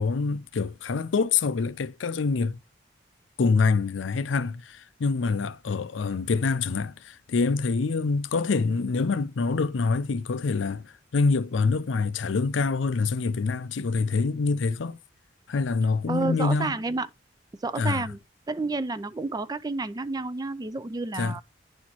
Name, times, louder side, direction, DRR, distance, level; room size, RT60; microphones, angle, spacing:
voice 1, 0.0-2.6 3.4-15.0 15.5-16.7 17.8-18.1 21.2-21.4, left 4 dB, 85° left, 0.5 m, -26 dB
voice 2, 16.1-17.1 17.6-18.2 18.5-21.4, right 3 dB, 20° right, 0.4 m, -30 dB
10.5 x 4.3 x 2.9 m
head